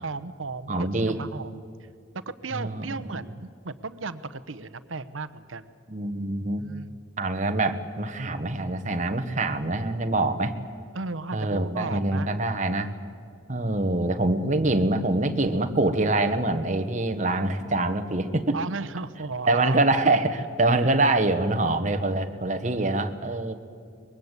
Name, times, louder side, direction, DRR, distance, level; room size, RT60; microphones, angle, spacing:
voice 1, 0.0-1.6 2.4-5.7 6.6-7.0 10.9-12.3 18.5-19.9 23.1-23.4, right 3 dB, 90° right, 13 dB, 1.0 m, -35 dB
voice 2, 0.7-1.2 2.5-3.2 5.9-6.6 7.2-10.5 11.3-12.9 13.5-18.6 19.5-23.5, right 2 dB, 40° right, 7 dB, 1.3 m, -25 dB
24.0 x 22.0 x 8.2 m, 2.3 s
head